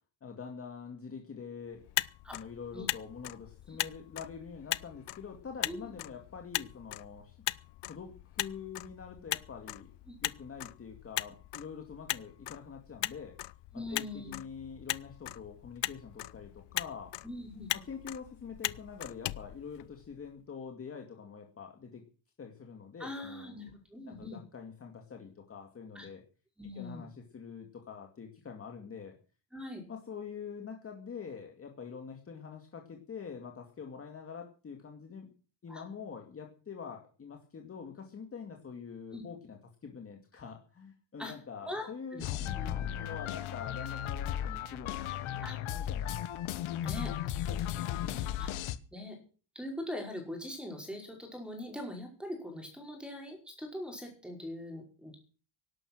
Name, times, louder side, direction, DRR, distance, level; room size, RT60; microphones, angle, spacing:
voice 1, 0.2-1.8 2.3-7.4 7.9-9.9 10.2-13.3 13.9-17.1 17.7-22.0 22.4-23.6 24.1-26.2 26.8-29.2 29.9-35.3 35.6-45.0 45.3-46.2 47.1-47.2 47.5-48.2, left 6 dB, 25° left, 3 dB, 2.3 m, -45 dB
Motor vehicle (road), 1.7-20.3, left 17 dB, 55° left, 0.7 m, -39 dB
voice 2, 13.7-14.4 17.2-17.7 23.0-24.4 26.0-26.1 26.6-27.1 29.5-29.8 35.7-35.8 39.1-39.2 41.2-41.3 41.6-42.3 42.6-42.9 45.4-45.6 46.8-47.1 48.4-48.5 48.9-49.2 49.6-55.2, left 1 dB, ahead, 3 dB, 5.3 m, -42 dB
sound 1, 42.2-48.8, left 11 dB, 75° left, 1.4 m, -35 dB
18.0 x 11.5 x 6.3 m, 0.39 s
cardioid pair, 170°, 49 cm